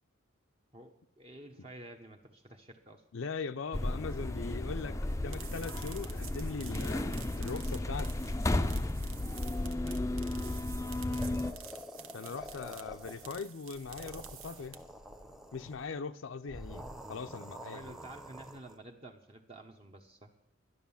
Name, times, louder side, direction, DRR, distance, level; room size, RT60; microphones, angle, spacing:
voice 1, 0.7-3.0 11.1-11.6 17.7-20.3, right 2 dB, 30° right, 0.9 m, -51 dB
voice 2, 3.1-7.1 7.4-8.1 12.1-14.8 15.5-18.0, left 5 dB, 65° left, 0.5 m, -40 dB
sound 1, 3.7-11.5, left 1 dB, 15° left, 0.4 m, -34 dB
sound 2, 5.1-15.0, right 8 dB, 85° right, 1.2 m, -50 dB
sound 3, 11.2-13.5 13.8-15.9 16.5-18.8, equal, ahead, 0.8 m, -47 dB
13.0 x 11.0 x 7.1 m
head